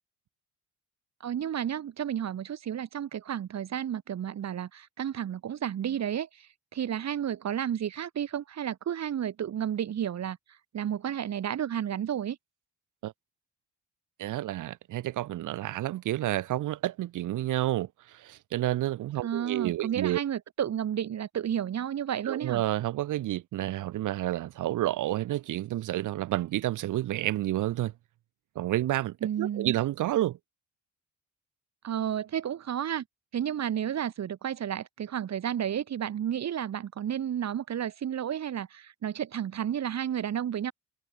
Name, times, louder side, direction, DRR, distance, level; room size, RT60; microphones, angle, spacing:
voice 1, 1.2-10.4 10.7-12.4 19.2-22.6 29.2-29.7 31.8-33.0 33.3-40.7, right 9 dB, 60° right, 4.3 m, -32 dB
voice 2, 14.2-20.2 22.3-27.9 28.6-30.4, right 14 dB, 85° right, 3.6 m, -30 dB
cardioid pair, 90°, 30 cm